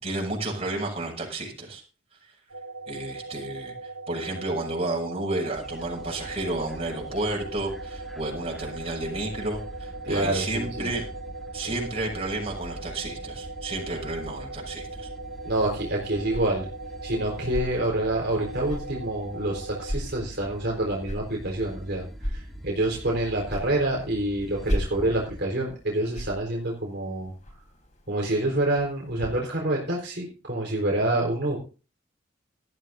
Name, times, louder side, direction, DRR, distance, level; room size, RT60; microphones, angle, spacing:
voice 1, 0.0-1.8 2.9-11.0 11.5-15.1, right 2 dB, 30° right, 0 dB, 6.8 m, -31 dB
sound 1, 2.5-20.0, right 3 dB, 85° right, 1.0 m, -40 dB
sound 2, 5.5-25.4, equal, ahead, 1.8 m, -43 dB
voice 2, 10.0-10.9 11.5-11.6 15.4-16.7 17.0-27.3 28.1-31.6, right 1 dB, 60° right, -2 dB, 4.3 m, -27 dB
sound 3, 15.2-29.3, equal, 40° left, 3.9 m, -38 dB
18.5 x 14.0 x 2.7 m, 0.35 s
head